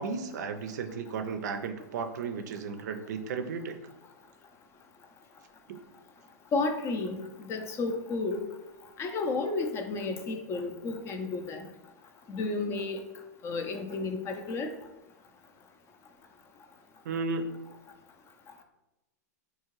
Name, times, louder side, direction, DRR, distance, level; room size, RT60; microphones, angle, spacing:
voice 1, 0.0-3.7 5.7-5.8 17.1-17.4, right 5 dB, 75° right, 7 dB, 0.4 m, -34 dB
voice 2, 6.5-8.5 9.0-11.7 12.3-13.0 13.4-14.7, left 3 dB, 30° left, 6 dB, 0.4 m, -32 dB
3.6 x 2.8 x 3.0 m, 0.99 s
hypercardioid pair, 125°, 9 cm